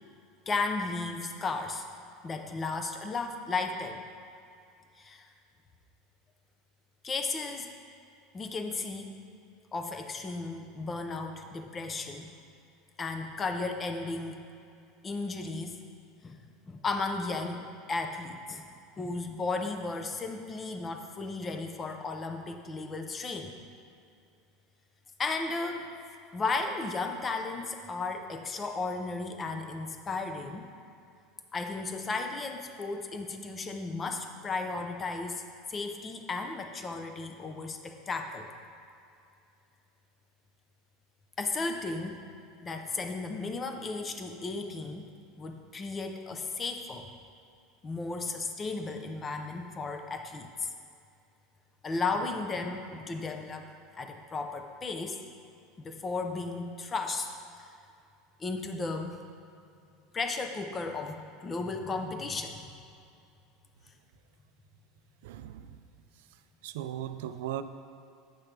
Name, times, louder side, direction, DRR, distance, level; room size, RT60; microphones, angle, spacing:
voice 1, 0.5-1.9 2.2-4.0 5.0-5.3 7.0-7.7 8.3-9.1 9.7-12.3 13.0-14.5 15.0-15.8 16.2-18.6 18.9-23.5 25.2-25.9 26.3-30.7 31.5-35.4 35.7-38.5 41.4-42.2 42.6-45.0 45.4-47.1 47.8-50.7 51.8-55.2 55.8-57.3 57.6-57.7 58.4-59.2 60.1-62.6, left 3 dB, 20° left, 5 dB, 0.5 m, -34 dB
voice 2, 65.2-65.8 66.6-67.6, right 12 dB, 80° right, 11 dB, 0.3 m, -37 dB
8.8 x 3.3 x 5.9 m, 2.5 s
supercardioid pair, 155°, 0 cm